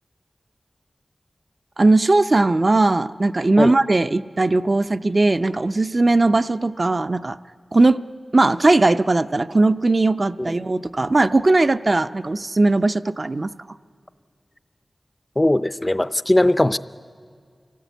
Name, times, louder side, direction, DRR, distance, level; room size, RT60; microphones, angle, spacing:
voice 1, 1.8-7.4 7.7-8.0 8.3-13.5, right 2 dB, 45° right, 0.5 m, -18 dB
voice 2, 15.4-16.8, left 1 dB, 25° left, 0.5 m, -19 dB
25.5 x 17.0 x 8.1 m
wide cardioid pair, 65°, 0 cm